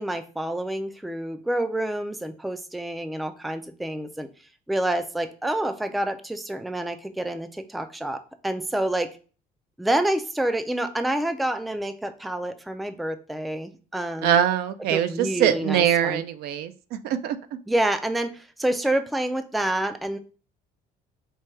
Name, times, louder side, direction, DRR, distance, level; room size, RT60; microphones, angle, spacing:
voice 1, 0.0-4.3 4.7-9.1 9.8-14.4 14.9-16.2 17.7-20.2, right 1 dB, ahead, 9 dB, 0.3 m, -28 dB
voice 2, 14.2-17.4, right 10 dB, 75° right, 11 dB, 0.5 m, -23 dB
4.5 x 2.2 x 4.5 m, 0.37 s
cardioid pair, 125°, 17 cm